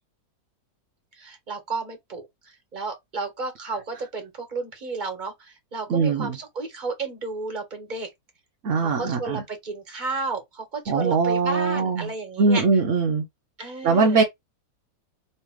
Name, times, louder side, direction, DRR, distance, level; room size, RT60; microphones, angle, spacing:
voice 1, 1.2-8.1 8.8-12.6 13.6-14.2, right 3 dB, 25° right, 1.4 m, -32 dB
voice 2, 5.9-6.4 8.6-9.4 10.9-12.1 12.4-13.2 13.8-14.2, right 4 dB, 55° right, 0.9 m, -21 dB
3.3 x 3.0 x 4.6 m
omnidirectional pair, 2.0 m